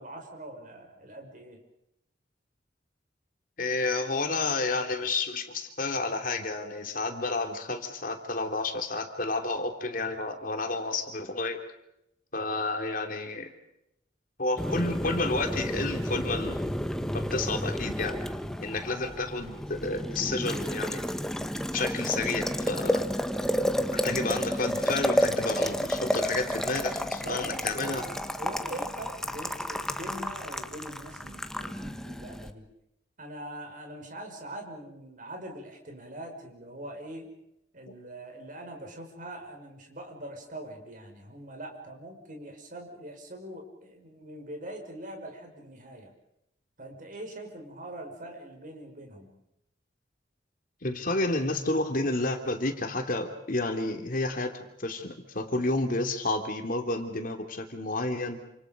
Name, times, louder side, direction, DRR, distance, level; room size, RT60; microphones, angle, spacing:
voice 1, 0.0-1.6 27.2-28.1 28.4-32.6 33.2-37.3 37.7-46.1 46.8-49.4, right 1 dB, 50° right, 3 dB, 5.7 m, -42 dB
voice 2, 3.6-11.6 12.3-13.5 14.4-16.7 17.1-18.2 18.6-21.1 21.7-23.0 24.0-28.0 50.8-58.4, left 2 dB, 50° left, 5 dB, 3.1 m, -30 dB
Boiling, 14.6-32.5, equal, 5° left, 1.3 m, -31 dB
28.5 x 27.0 x 5.2 m, 0.81 s
head